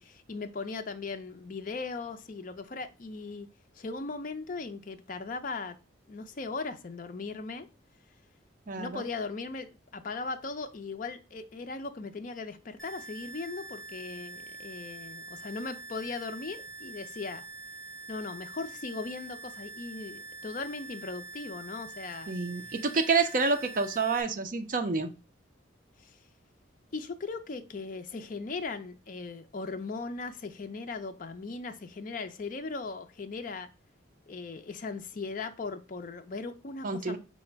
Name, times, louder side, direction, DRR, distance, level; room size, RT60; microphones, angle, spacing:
voice 1, 0.0-3.5 3.8-5.7 6.1-7.7 8.8-17.4 18.1-22.3 26.0-26.2 26.9-33.7 34.3-37.2, left 4 dB, 45° left, 0.4 m, -38 dB
voice 2, 8.7-9.0 22.3-25.1 36.8-37.2, right 4 dB, 45° right, 0.6 m, -28 dB
sound 1, 12.8-24.2, right 3 dB, ahead, 0.7 m, -45 dB
4.8 x 2.1 x 4.4 m
head